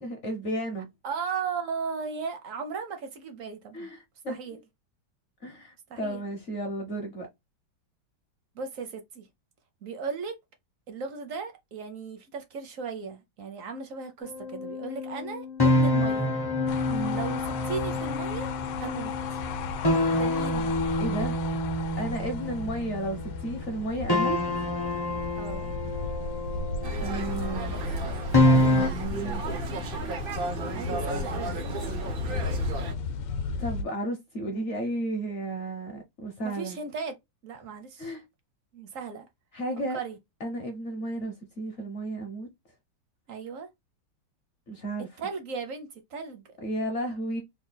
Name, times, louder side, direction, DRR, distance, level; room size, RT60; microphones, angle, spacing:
voice 1, 0.0-0.9 3.7-4.4 5.4-7.3 16.9-17.2 21.0-21.4 22.0-24.4 27.0-27.9 28.5-29.4 33.6-36.8 38.0-38.2 39.5-40.0 40.4-42.5 44.7-45.1 46.6-47.4, right 1 dB, 55° left, 0.8 m, -33 dB
voice 2, 1.0-3.9 4.3-4.6 5.9-6.2 8.5-9.3 9.8-10.4 10.9-16.3 17.1-18.5 18.8-19.4 20.1-20.7 25.4-25.7 30.7-31.9 36.4-37.2 37.4-38.1 38.7-39.3 39.9-40.2 43.3-43.7 45.2-46.4, right 5 dB, 65° right, 0.8 m, -36 dB
sound 1, 14.2-23.5 24.1-28.9, left 1 dB, 25° left, 0.5 m, -27 dB
sound 2, 16.7-33.8, left 4 dB, 75° left, 1.2 m, -34 dB
sound 3, 26.8-32.9, right 4 dB, 90° right, 0.4 m, -35 dB
3.6 x 2.2 x 3.8 m
omnidirectional pair, 2.1 m